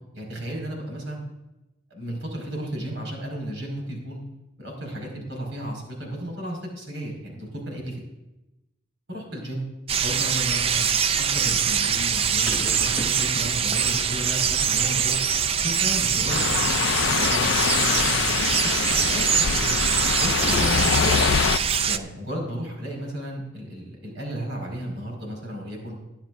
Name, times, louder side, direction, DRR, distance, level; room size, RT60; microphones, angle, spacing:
voice 1, 0.1-1.2 1.9-4.2 4.6-8.0 9.1-9.6 10.0-10.9 11.2-15.2 15.6-18.3 18.6-19.7 20.2-21.5 21.9-26.0, right 1 dB, 75° right, 0 dB, 5.0 m, -33 dB
sound 1, 9.9-22.0, right 7 dB, 30° right, 0.4 m, -23 dB
sound 2, 12.5-13.3 20.4-20.9, left 1 dB, 5° right, 2.6 m, -33 dB
sound 3, 16.3-21.6, left 7 dB, 65° left, 0.4 m, -24 dB
23.0 x 10.5 x 2.6 m, 0.96 s
head